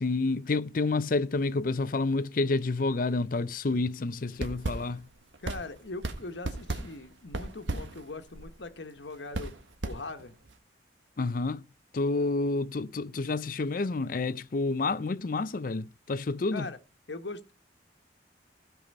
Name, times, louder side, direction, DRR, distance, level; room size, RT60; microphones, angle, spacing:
voice 1, 0.0-5.1 11.2-11.6 11.9-16.7, left 3 dB, 50° left, 0.5 m, -29 dB
sound 1, 4.3-10.5, right 2 dB, 90° right, 1.6 m, -37 dB
voice 2, 5.4-9.5 9.8-10.3 16.5-16.8 17.1-17.5, left 3 dB, 75° left, 1.3 m, -41 dB
16.0 x 5.5 x 5.4 m
head